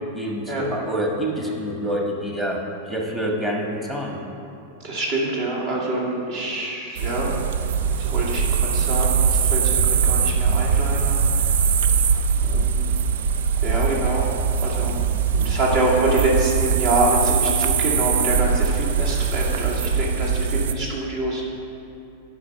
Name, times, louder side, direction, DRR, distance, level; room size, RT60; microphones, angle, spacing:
voice 1, 0.1-4.2, equal, 10° right, -1 dB, 1.4 m, -27 dB
voice 2, 4.8-7.3 8.0-11.5 12.4-12.9 13.6-14.3 14.6-14.9 15.4-21.4, right 2 dB, 50° right, -3 dB, 2.4 m, -25 dB
sound 1, 7.0-20.7, right 6 dB, 75° right, 0.4 m, -21 dB
10.0 x 5.7 x 5.6 m, 2.8 s
supercardioid pair, 150°, 0 cm